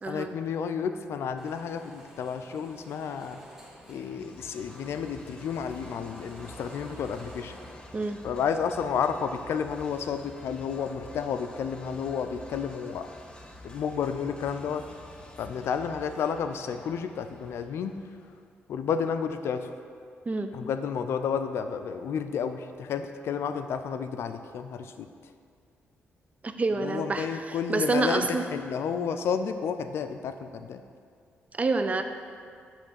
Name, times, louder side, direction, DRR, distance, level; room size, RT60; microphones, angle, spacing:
voice 1, 0.1-3.4 3.9-7.5 8.2-13.1 13.6-14.8 15.4-18.0 18.7-19.7 20.5-25.3 26.8-30.8, left 7 dB, 75° left, 9 dB, 0.4 m, -31 dB
sound 1, 1.4-7.7, equal, 5° right, 1.7 m, -50 dB
sound 2, 3.8-18.5, left 1 dB, 20° left, 0.9 m, -49 dB
voice 2, 26.4-28.5 31.5-32.0, right 3 dB, 35° right, 7 dB, 0.5 m, -28 dB
8.2 x 3.2 x 6.3 m, 2.2 s
cardioid pair, 75°, 4 cm